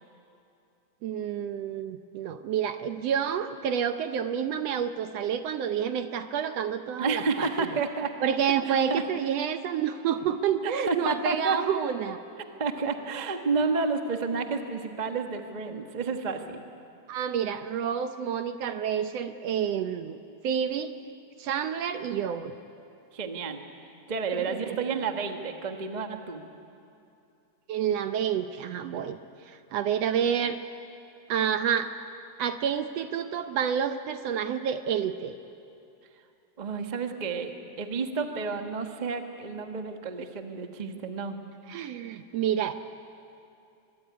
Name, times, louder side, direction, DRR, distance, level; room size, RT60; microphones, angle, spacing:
voice 1, 1.0-7.5 8.2-12.2 17.1-20.9 21.4-22.5 24.3-24.8 27.7-29.2 29.5-30.6 31.3-31.9 32.4-35.4 41.7-42.7, right 8 dB, 70° right, 9 dB, 1.7 m, -29 dB
voice 2, 7.0-8.1 8.6-9.0 10.6-11.6 12.6-16.6 23.1-23.6 24.1-26.4 36.6-37.5 37.8-41.4, right 4 dB, 45° right, 5 dB, 0.5 m, -30 dB
24.5 x 22.0 x 9.6 m, 2.6 s
omnidirectional pair, 3.4 m